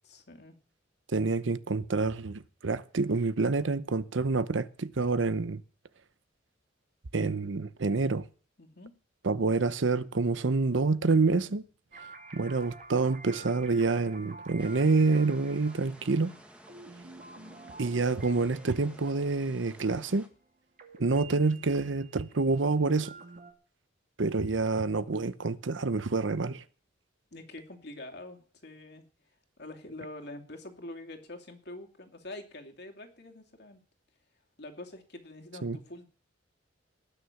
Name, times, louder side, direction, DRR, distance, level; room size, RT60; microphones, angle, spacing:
voice 1, 0.0-0.6 8.6-8.9 27.3-29.0 29.6-33.8 34.6-36.0, left 2 dB, 60° left, 2.6 m, -45 dB
voice 2, 1.1-5.6 7.1-8.2 9.2-11.6 12.3-16.3 17.8-20.3 21.0-23.1 24.2-26.6 35.6-35.8, right 3 dB, 75° right, 0.8 m, -27 dB
sound 1, 11.9-20.5 20.8-23.5, right 3 dB, 45° right, 2.4 m, -49 dB
sound 2, 14.6-20.3, equal, 5° right, 1.6 m, -54 dB
19.5 x 6.6 x 7.1 m
head